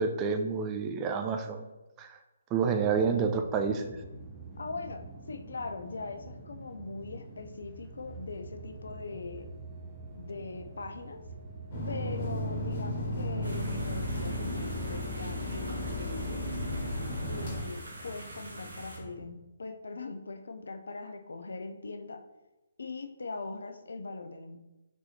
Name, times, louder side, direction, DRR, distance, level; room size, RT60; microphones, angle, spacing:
voice 1, 0.0-1.7 2.0-2.2 2.5-4.0, right 5 dB, 20° right, 6 dB, 0.4 m, -29 dB
sound 1, 2.8-19.3, right 2 dB, 5° right, 0.8 m, -47 dB
voice 2, 4.6-9.5 10.1-11.2 11.9-16.4 17.3-22.2 22.8-24.6, left 3 dB, 70° left, 7 dB, 0.5 m, -41 dB
sound 2, 11.7-17.6, left 1 dB, 40° left, 1.5 m, -34 dB
sound 3, 13.4-19.0, right 1 dB, 70° right, 1.3 m, -46 dB
4.6 x 4.0 x 2.8 m, 1.0 s
figure-of-eight pair, 140°, 0 cm